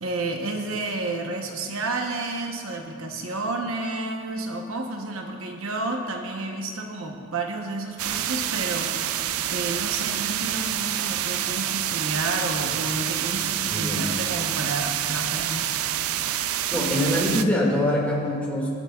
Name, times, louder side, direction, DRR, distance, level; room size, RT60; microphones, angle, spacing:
voice 1, 0.0-9.2 9.5-15.7, right 2 dB, 75° right, 3 dB, 0.9 m, -31 dB
sound 1, 8.0-17.4, right 11 dB, 90° right, 0.4 m, -27 dB
voice 2, 13.7-14.0 16.5-18.8, left 1 dB, 5° left, -4 dB, 1.9 m, -24 dB
22.0 x 8.0 x 2.3 m, 2.3 s
head